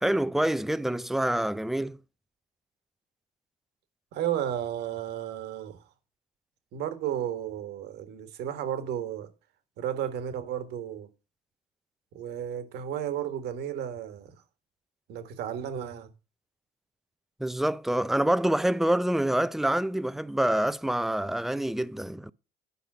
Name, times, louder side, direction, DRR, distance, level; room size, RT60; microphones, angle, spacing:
voice 1, 0.0-2.0 17.4-22.3, right 1 dB, ahead, 0.4 m, -26 dB
voice 2, 4.1-5.8 6.7-9.3 9.8-11.1 12.1-14.3 15.1-16.1, right 10 dB, 80° right, 1.7 m, -33 dB
10.5 x 5.6 x 6.2 m
cardioid pair, 110°, 17 cm